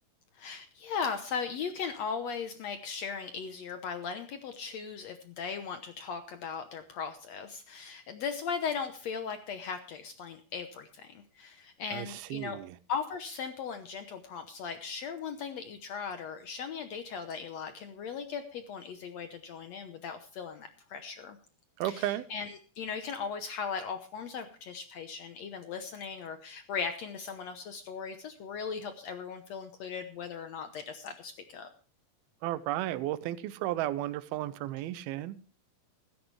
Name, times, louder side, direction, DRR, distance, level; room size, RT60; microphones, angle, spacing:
voice 1, 0.3-12.6 12.9-21.4 21.8-31.7, left 6 dB, 75° left, 8 dB, 1.5 m, -38 dB
voice 2, 11.9-12.8 21.8-22.2 32.4-35.4, right 14 dB, 85° right, 15 dB, 2.6 m, -33 dB
16.0 x 13.5 x 3.3 m, 0.39 s
omnidirectional pair, 4.3 m